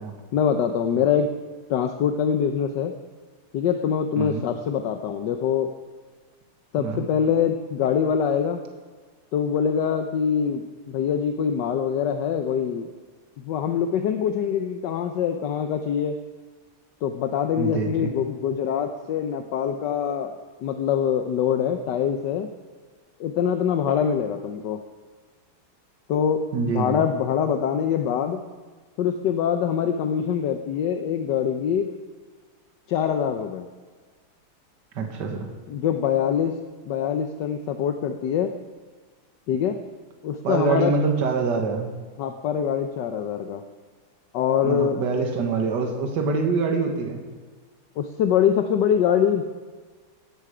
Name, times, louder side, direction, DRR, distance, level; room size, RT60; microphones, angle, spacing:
voice 1, 0.3-1.3 1.7-2.9 3.5-5.7 6.7-8.6 9.3-12.9 13.4-16.2 17.0-20.3 20.6-22.5 23.2-24.8 26.1-28.4 29.0-31.9 32.9-33.7 35.7-38.5 39.5-39.8 40.2-40.9 42.2-43.6 44.3-45.0 48.0-49.4, left 8 dB, 65° left, 7 dB, 1.2 m, -24 dB
voice 2, 4.2-4.5 6.8-7.1 17.6-18.1 26.5-27.1 34.9-35.5 40.4-41.9 44.6-47.2, right 4 dB, 55° right, 3 dB, 2.1 m, -25 dB
17.5 x 12.5 x 5.0 m, 1.5 s
omnidirectional pair, 2.4 m